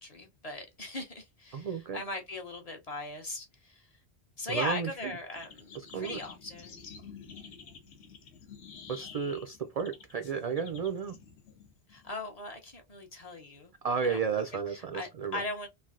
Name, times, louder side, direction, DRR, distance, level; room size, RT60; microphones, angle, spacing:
voice 1, 0.0-3.9 4.4-6.8 11.9-13.7 14.0-14.2 14.7-15.7, left 2 dB, 40° left, 0.7 m, -39 dB
voice 2, 1.5-2.0 4.5-5.2 5.7-6.2 8.9-11.1 13.8-15.4, right 6 dB, 60° right, 0.4 m, -33 dB
sound 1, 5.3-12.3, left 6 dB, 75° left, 1.0 m, -49 dB
3.3 x 2.5 x 2.4 m
omnidirectional pair, 1.1 m